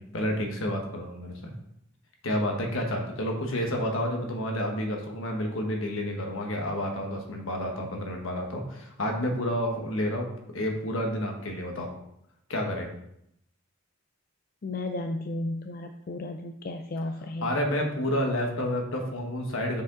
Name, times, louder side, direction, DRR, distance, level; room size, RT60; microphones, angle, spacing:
voice 1, 0.0-1.5 2.2-10.3 10.5-11.9 12.5-12.9 17.4-19.8, equal, 70° left, 2 dB, 1.3 m, -30 dB
voice 2, 14.6-17.6, left 2 dB, 45° left, 5 dB, 0.4 m, -34 dB
7.0 x 5.0 x 3.8 m, 0.77 s
head